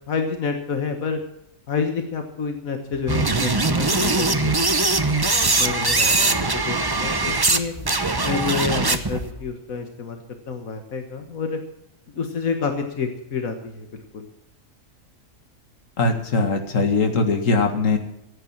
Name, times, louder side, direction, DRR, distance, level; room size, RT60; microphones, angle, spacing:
voice 1, 0.1-1.2 1.7-4.5 4.8-4.9 5.4-7.7 8.2-10.2 10.5-11.6 12.1-14.3, left 5 dB, 90° left, 5 dB, 1.8 m, -28 dB
sound 1, 2.9-9.4, left 3 dB, 5° left, 5.3 m, -39 dB
sound 2, 3.1-7.6 7.8-9.2, right 3 dB, 20° right, 0.8 m, -21 dB
voice 2, 16.0-18.0, left 3 dB, 70° left, 5 dB, 2.2 m, -21 dB
15.0 x 9.2 x 7.2 m, 0.81 s
omnidirectional pair, 1.4 m